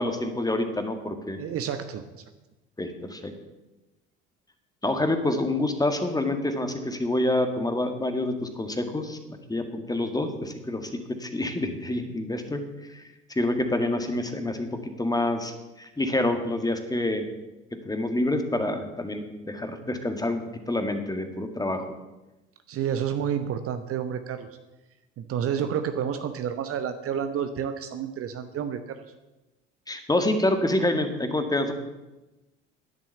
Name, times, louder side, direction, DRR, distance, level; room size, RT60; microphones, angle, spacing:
voice 1, 0.0-1.4 2.8-3.3 4.8-10.9 11.2-14.7 15.0-17.3 17.9-20.4 20.7-21.9 29.9-31.7, left 1 dB, 10° left, 7 dB, 1.8 m, -27 dB
voice 2, 1.4-2.2 22.7-24.5 25.2-29.0, right 8 dB, 40° right, 9 dB, 1.0 m, -30 dB
10.5 x 8.1 x 8.0 m, 1.0 s
figure-of-eight pair, 60°, 34 cm